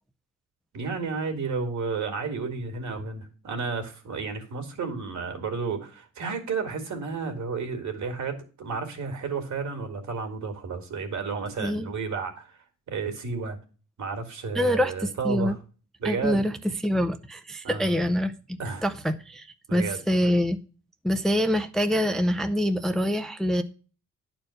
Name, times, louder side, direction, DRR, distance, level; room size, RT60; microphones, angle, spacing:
voice 1, 0.7-12.6 12.9-13.6 14.0-15.6 16.0-16.4 17.6-18.0 18.6-18.9 19.7-20.0, right 5 dB, 65° right, 2.3 m, -32 dB
voice 2, 11.6-11.9 14.6-15.6 16.0-18.3 18.8-19.5 19.7-20.6 21.0-23.6, equal, ahead, 0.4 m, -25 dB
11.0 x 4.5 x 6.3 m
wide cardioid pair, 175°, 31 cm